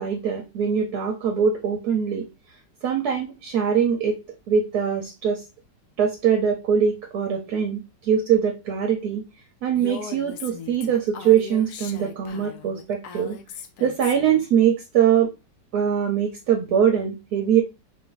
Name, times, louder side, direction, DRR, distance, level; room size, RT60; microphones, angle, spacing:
voice 1, 0.0-2.3 2.8-4.2 4.5-5.4 6.0-9.2 9.6-13.4 13.8-15.3 15.7-17.6, right 8 dB, 70° right, 2 dB, 1.1 m, -22 dB
Female speech woman speaking, 9.8-14.4, left 7 dB, 70° left, 1.0 m, -39 dB
3.6 x 2.6 x 3.8 m, 0.25 s
omnidirectional pair, 1.9 m